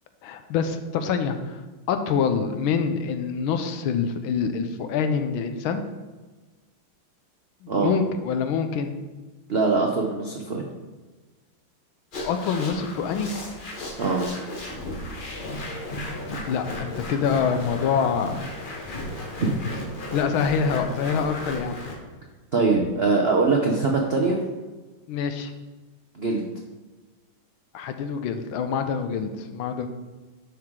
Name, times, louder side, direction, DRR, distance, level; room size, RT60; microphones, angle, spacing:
voice 1, 0.2-1.6 1.9-5.8 7.6-8.9 12.2-13.3 16.5-18.8 20.1-21.8 25.1-25.5 27.7-29.9, left 6 dB, 80° left, 8 dB, 1.5 m, -26 dB
voice 2, 9.5-10.6 14.0-14.3 19.4-19.5 22.5-24.4 26.1-26.5, right 3 dB, 80° right, 0 dB, 0.5 m, -22 dB
sound 1, 12.1-22.0, left 1 dB, 35° left, 0.8 m, -34 dB
10.5 x 4.7 x 3.7 m, 1.3 s
omnidirectional pair, 2.2 m